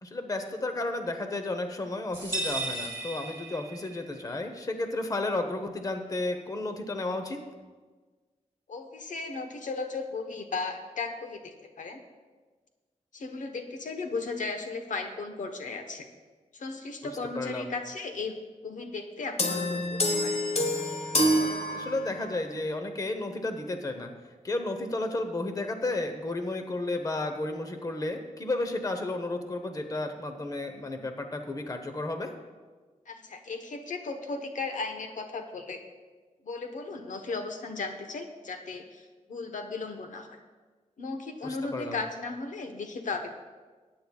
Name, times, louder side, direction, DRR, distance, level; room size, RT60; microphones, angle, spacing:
voice 1, 0.0-7.4 17.3-17.7 21.7-24.1 24.4-32.3 41.4-42.0, left 2 dB, 25° left, 6 dB, 0.8 m, -32 dB
sound 1, 2.1-4.1, right 2 dB, 20° right, 2.3 m, -34 dB
voice 2, 8.7-12.0 13.1-16.1 16.5-18.4 18.6-20.4 33.1-35.8 36.4-40.4 41.0-43.3, left 3 dB, 80° left, 5 dB, 1.0 m, -36 dB
sound 2, 19.4-22.4, left 1 dB, 55° left, 1.2 m, -27 dB
20.0 x 9.5 x 2.3 m, 1.4 s
wide cardioid pair, 145°, 13 cm